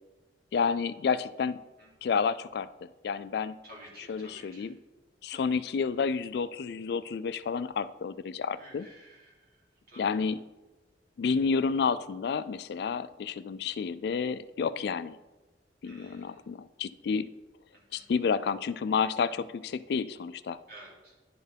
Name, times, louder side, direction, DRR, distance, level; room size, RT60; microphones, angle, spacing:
voice 1, 0.5-1.6 2.0-3.6 4.0-4.8 5.2-8.9 10.0-10.4 11.2-15.2 15.8-17.3 17.9-20.6, left 5 dB, 65° left, 15 dB, 0.3 m, -30 dB
voice 2, 3.6-4.6 8.6-9.2 9.9-10.1 15.8-16.3 17.9-18.0 20.7-21.1, right 1 dB, 55° right, -5 dB, 3.1 m, -51 dB
10.5 x 4.4 x 5.1 m, 1.1 s
head